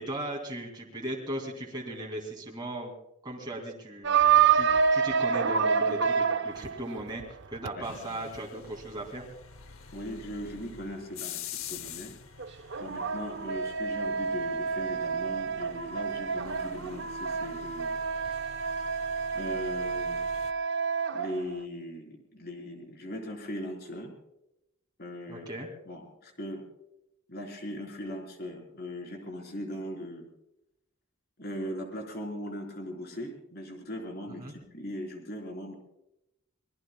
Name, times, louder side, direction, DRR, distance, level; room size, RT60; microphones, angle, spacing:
voice 1, 0.0-2.9 3.2-9.2 25.3-25.7 34.4-34.5, right 1 dB, 20° right, -1 dB, 2.4 m, -37 dB
sound 1, 4.0-7.7 12.4-21.6, right 6 dB, 60° right, 0.6 m, -28 dB
sound 2, 7.8-20.5, left 8 dB, 85° left, 0.8 m, -47 dB
voice 2, 9.9-11.4 11.7-12.2 12.8-18.0 19.3-20.2 21.1-24.1 25.0-25.5 25.9-26.7 27.3-30.3 31.4-35.7, equal, 50° left, 1 dB, 3.9 m, -39 dB
25.0 x 20.5 x 2.3 m, 0.87 s
head